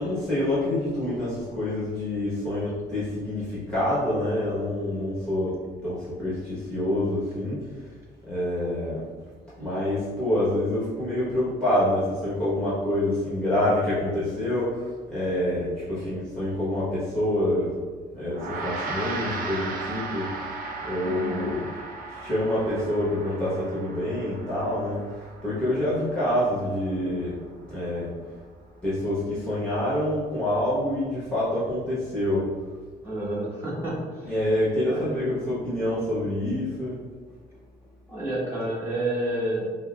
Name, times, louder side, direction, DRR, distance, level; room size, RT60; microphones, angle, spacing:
voice 1, 0.0-5.6 5.8-7.6 8.2-9.1 9.6-17.7 18.1-20.3 20.8-21.7 22.1-27.4 27.7-28.1 28.8-32.5 34.2-37.0, left 1 dB, 5° left, -10 dB, 1.1 m, -27 dB
Gong, 18.3-27.9, right 3 dB, 55° right, 0.5 m, -37 dB
voice 2, 21.0-21.5 33.0-34.3 34.9-35.1 38.1-39.8, right 1 dB, 15° right, -9 dB, 1.5 m, -30 dB
5.2 x 2.0 x 2.4 m, 1.5 s
cardioid pair, 110°, 17 cm